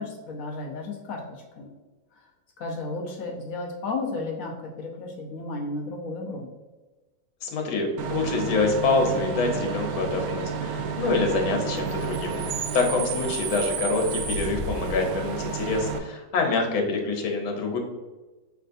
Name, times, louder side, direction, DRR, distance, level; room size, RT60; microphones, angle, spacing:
voice 1, 0.0-1.7 2.6-6.5, left 3 dB, 60° left, -1 dB, 0.9 m, -33 dB
voice 2, 7.4-12.4 12.7-17.8, left 3 dB, 85° left, 2 dB, 1.7 m, -26 dB
Bus / Idling / Screech, 8.0-16.0, right 5 dB, 80° right, 1.3 m, -30 dB
5.8 x 3.3 x 2.6 m, 1.2 s
omnidirectional pair, 2.1 m